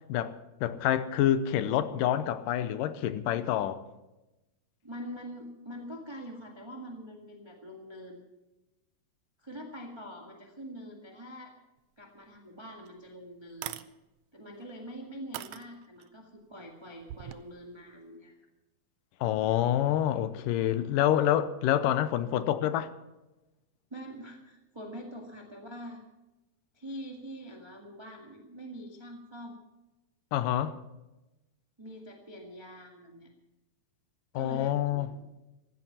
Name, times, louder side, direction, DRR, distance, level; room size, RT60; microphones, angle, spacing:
voice 1, 0.1-3.8 19.2-22.9 30.3-30.8 34.3-35.1, left 11 dB, 85° left, 2.4 m, -27 dB
voice 2, 4.8-8.2 9.4-11.5 12.0-13.8 14.3-18.4 21.8-21.9 23.9-26.0 26.7-29.6 31.8-33.3 34.3-35.3, equal, 20° right, 0.8 m, -44 dB
sound 1, 12.3-12.4 12.9-13.0 13.5-13.9 14.6-14.7 15.3-16.1 17.0-17.4, right 14 dB, 80° right, 1.6 m, -40 dB
16.0 x 13.5 x 5.7 m
omnidirectional pair, 3.8 m